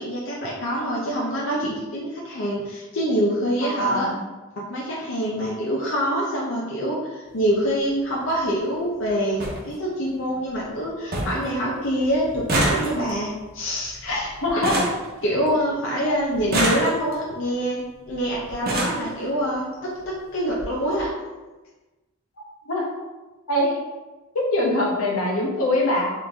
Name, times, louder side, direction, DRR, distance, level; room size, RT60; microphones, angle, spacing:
voice 1, 0.0-4.1 4.6-14.3 15.2-21.1, equal, 65° left, -5 dB, 0.7 m, -25 dB
voice 2, 3.6-4.2 14.1-14.8 16.1-16.2 22.6-22.9 23.5-23.8 24.3-26.1, left 1 dB, 85° left, -1 dB, 1.0 m, -23 dB
sound 1, 7.3-7.5 8.7-8.8 9.0-9.1 9.4-9.6 10.0-10.5 10.8-10.9 11.1-11.5 11.8-15.8 16.3-17.3 18.1-18.2 18.5-19.1 20.0-20.1 20.5-20.6 20.9-21.0, right 1 dB, 45° right, 0.9 m, -27 dB
3.5 x 3.1 x 4.0 m, 1.2 s
head